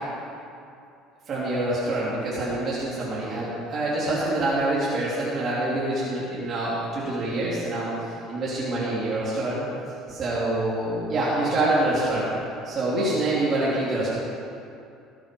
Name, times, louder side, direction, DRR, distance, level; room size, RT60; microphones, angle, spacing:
voice 1, 1.3-7.9 8.3-9.6 10.1-12.3 12.6-14.1, right 2 dB, 40° right, -8 dB, 3.6 m, -26 dB
20.0 x 9.6 x 5.6 m, 2.6 s
cardioid pair, 130°, 0 cm